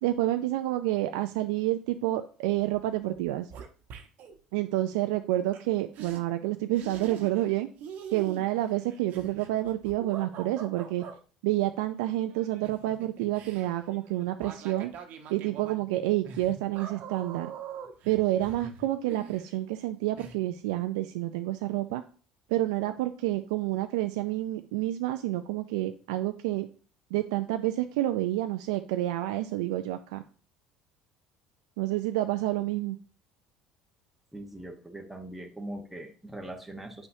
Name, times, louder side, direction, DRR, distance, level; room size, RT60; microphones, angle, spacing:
voice 1, 0.0-3.5 4.5-7.7 8.1-11.0 11.4-14.9 15.3-17.5 18.1-22.0 22.5-26.7 27.1-30.2 31.8-33.0, right 15 dB, 75° right, 8 dB, 0.4 m, -29 dB
sound 1, 2.7-2.9 3.1-4.4 5.5-5.6 5.9-6.2 6.7-7.5 7.8-11.2 12.3-19.8 20.2-20.3, right 7 dB, 55° right, 1.0 m, -44 dB
voice 2, 34.3-37.1, right 1 dB, 5° right, 2 dB, 1.1 m, -41 dB
7.9 x 5.5 x 2.7 m, 0.39 s
hypercardioid pair, 65°, 3 cm